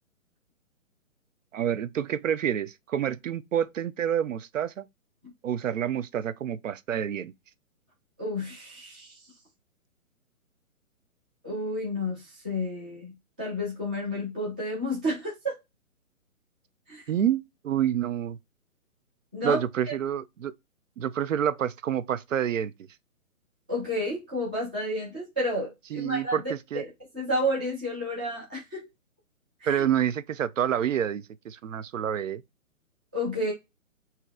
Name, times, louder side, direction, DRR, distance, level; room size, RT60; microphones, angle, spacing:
voice 1, 1.5-4.8 5.4-7.3 17.1-18.4 19.4-20.5 21.0-22.7 25.9-26.8 29.7-32.4, right 9 dB, 65° right, 0.5 m, -28 dB
voice 2, 8.2-9.2 11.4-15.5 16.9-17.0 19.3-19.6 23.7-26.4 26.7-26.9 27.1-28.9 29.6-29.8 33.1-33.5, left 1 dB, 5° right, 0.4 m, -31 dB
5.9 x 2.7 x 2.3 m
hypercardioid pair, 140°, 42 cm